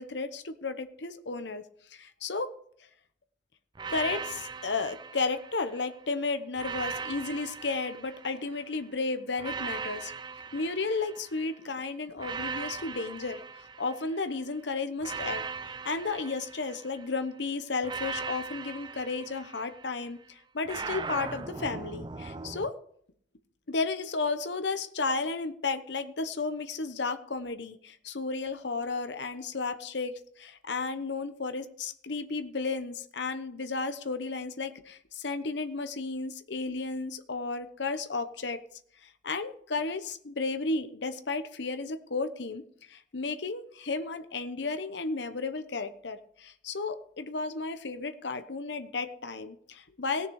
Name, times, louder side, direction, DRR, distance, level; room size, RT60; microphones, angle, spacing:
voice 1, 0.0-1.6 1.9-2.5 3.9-10.1 10.5-13.4 13.8-22.7 23.7-38.6 39.0-42.6 42.9-50.3, left 3 dB, 70° left, 10 dB, 0.9 m, -33 dB
sound 1, 3.8-5.9 6.6-8.7 9.4-11.6 12.2-14.3 15.0-17.2 17.8-20.0 20.7-22.7, right 5 dB, 25° right, 0.4 m, -39 dB
18.0 x 6.7 x 4.8 m, 0.63 s
head